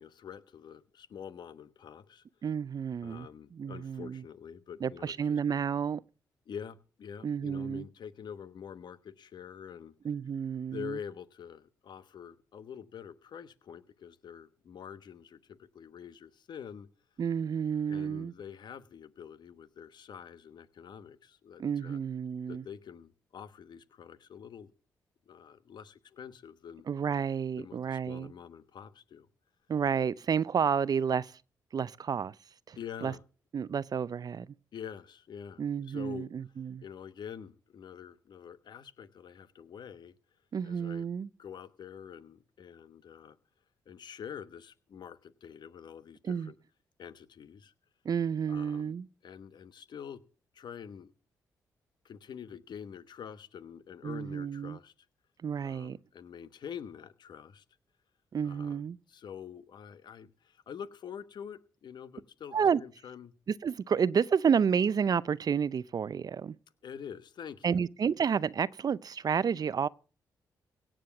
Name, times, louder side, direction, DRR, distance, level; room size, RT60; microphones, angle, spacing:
voice 1, 0.0-2.2 3.0-5.4 6.5-9.9 10.7-16.9 17.9-22.0 22.5-24.7 25.3-26.9 27.6-29.3 32.7-33.2 34.7-36.3 36.8-40.2 40.6-41.1 41.4-43.4 43.9-46.5 47.0-47.7 48.5-48.9 49.2-50.2 50.5-51.1 52.0-54.9 55.6-57.6 58.4-58.8 59.1-63.3 66.8-67.8, left 8 dB, 65° left, 1.1 m, -46 dB
voice 2, 2.4-4.2 4.8-6.0 7.2-7.8 10.0-11.0 17.2-18.3 21.6-22.6 26.9-28.3 29.7-31.4 31.7-32.3 32.7-33.1 33.5-34.5 35.6-36.8 40.5-41.3 46.2-46.5 48.0-49.1 54.0-54.8 55.4-56.0 58.3-59.0 62.5-62.8 63.5-66.6 67.6-69.9, right 7 dB, 50° right, 0.6 m, -30 dB
17.0 x 7.6 x 7.1 m
supercardioid pair, 50°, 8 cm